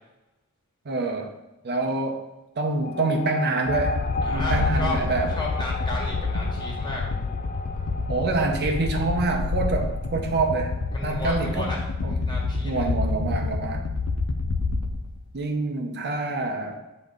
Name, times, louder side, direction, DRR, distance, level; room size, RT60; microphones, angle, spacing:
voice 1, 0.9-1.3 1.6-2.2 2.6-4.0 4.3-5.3 8.1-10.8 11.0-11.8 12.0-12.1 12.6-13.9 15.3-16.8, right 3 dB, 50° right, 4 dB, 0.6 m, -26 dB
sound 1, 2.8-13.7, left 3 dB, 35° left, 0.3 m, -36 dB
sound 2, 3.7-15.2, left 3 dB, 85° left, 0.5 m, -28 dB
voice 2, 4.2-5.0 5.3-7.0 10.9-11.8 12.1-12.8, left 2 dB, 20° left, -3 dB, 1.5 m, -33 dB
7.0 x 3.8 x 3.7 m, 1.0 s
head